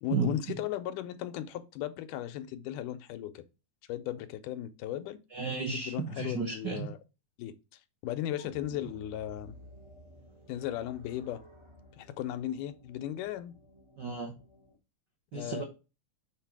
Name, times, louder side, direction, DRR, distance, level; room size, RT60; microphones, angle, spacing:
voice 1, 0.0-3.4 3.9-5.2 5.7-7.0 7.4-7.5 8.0-9.6 10.5-11.4 12.0-13.6 15.3-15.6, left 12 dB, 80° left, 2.1 m, -36 dB
voice 2, 5.3-6.9 8.4-8.5 14.0-14.3 15.3-15.6, right 5 dB, 80° right, 0.9 m, -33 dB
sound 1, 8.5-14.8, equal, 30° right, 0.5 m, -55 dB
6.5 x 4.1 x 4.6 m
omnidirectional pair, 3.7 m